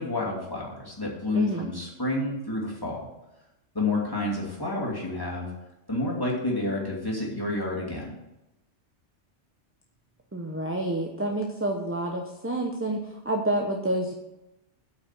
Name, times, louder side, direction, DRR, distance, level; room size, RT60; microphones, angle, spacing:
voice 1, 0.0-3.1 3.7-5.5 5.9-8.1, left 2 dB, 20° left, -4 dB, 2.7 m, -29 dB
voice 2, 1.3-1.7 10.3-14.1, right 1 dB, 10° right, 1 dB, 0.8 m, -28 dB
8.5 x 5.7 x 7.4 m, 0.94 s
omnidirectional pair, 1.2 m